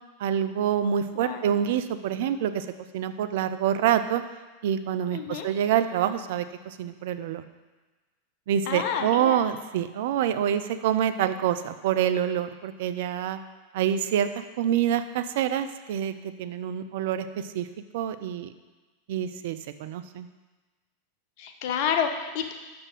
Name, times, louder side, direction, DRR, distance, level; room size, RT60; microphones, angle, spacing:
voice 1, 0.2-2.7 2.9-4.2 4.6-7.4 8.5-13.4 13.7-17.7 17.9-18.5 19.1-20.3, right 9 dB, 55° right, 11 dB, 0.4 m, -26 dB
voice 2, 1.1-1.5 5.1-5.5 8.7-9.5 21.4-22.5, left 7 dB, 50° left, 5 dB, 0.8 m, -29 dB
6.0 x 4.3 x 6.3 m, 1.2 s
figure-of-eight pair, 90°, 0 cm